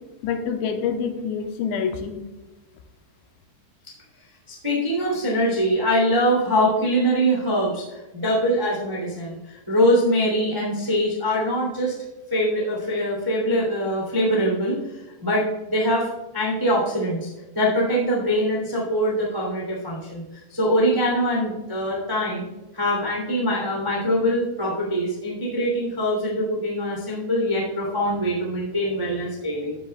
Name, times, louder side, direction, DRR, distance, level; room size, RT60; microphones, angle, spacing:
voice 1, 0.2-2.2, left 6 dB, 85° left, 5 dB, 3.1 m, -26 dB
voice 2, 4.5-12.0 12.3-17.3 17.5-20.2 20.5-22.5 22.7-29.7, equal, 10° right, -3 dB, 1.2 m, -23 dB
14.5 x 7.4 x 2.3 m, 1.1 s
omnidirectional pair, 5.3 m